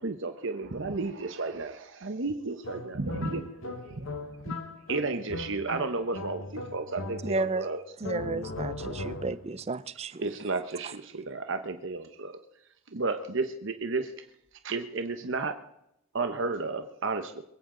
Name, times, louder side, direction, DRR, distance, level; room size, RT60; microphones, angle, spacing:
voice 1, 0.0-3.4 4.9-7.8 10.2-12.4 12.9-14.1 14.6-15.5 16.1-17.4, right 3 dB, 60° right, 1.0 m, -32 dB
sound 1, 2.6-7.6 8.0-9.5, left 2 dB, 70° left, 1.5 m, -38 dB
voice 2, 3.0-5.1, right 1 dB, 85° right, 4.6 m, -52 dB
voice 3, 7.2-7.7 8.0-10.2, right 3 dB, 30° right, 0.5 m, -32 dB
22.0 x 16.5 x 3.9 m
head